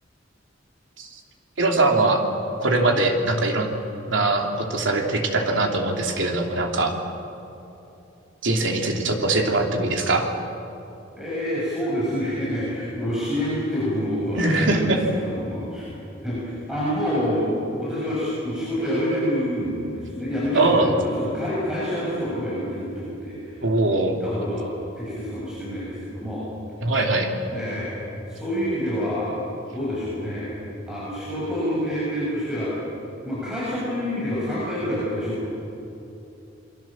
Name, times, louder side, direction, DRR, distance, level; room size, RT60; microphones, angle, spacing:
voice 1, 1.6-2.2 2.6-3.7 4.1-6.9 8.4-10.3 14.4-15.0 20.5-20.9 23.6-24.2 26.8-27.3, right 2 dB, 70° right, 2 dB, 3.0 m, -22 dB
voice 2, 11.2-15.9 16.2-17.5 17.8-23.6 24.0-24.6 25.0-26.4 27.5-28.0 28.3-29.3 29.7-30.5 30.9-32.7 33.2-35.5, equal, 5° right, -9 dB, 6.9 m, -27 dB
28.0 x 22.5 x 7.5 m, 2.9 s
head